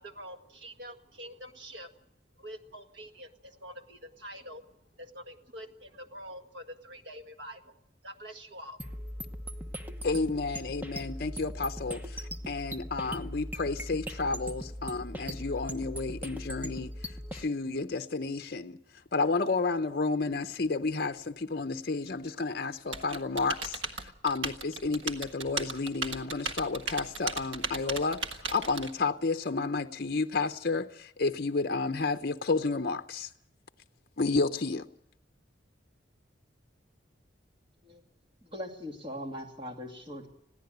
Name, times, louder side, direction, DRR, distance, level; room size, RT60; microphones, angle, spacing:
voice 1, 0.0-2.0 2.4-8.8, equal, 65° right, 1.7 m, -46 dB
sound 1, 8.8-17.4, equal, 10° right, 1.0 m, -39 dB
voice 2, 10.0-16.9 17.3-18.8 19.1-33.3 34.2-34.9, left 3 dB, 55° left, 0.7 m, -31 dB
Typing, 22.9-28.9, right 4 dB, 90° right, 1.7 m, -36 dB
voice 3, 38.4-40.3, equal, 25° right, 2.6 m, -40 dB
21.0 x 16.0 x 8.0 m
head